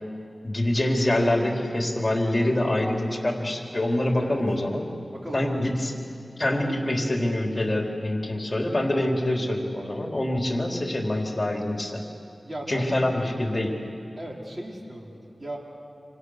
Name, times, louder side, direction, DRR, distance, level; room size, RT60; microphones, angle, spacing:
voice 1, 0.4-4.9 5.3-5.9 6.4-12.0 12.7-13.8, left 1 dB, 35° left, 1 dB, 3.7 m, -25 dB
voice 2, 5.1-5.7 12.4-12.9 14.2-15.6, right 1 dB, 35° right, -1 dB, 5.0 m, -37 dB
27.5 x 27.5 x 6.5 m, 2.5 s
cardioid pair, 40°, 0 cm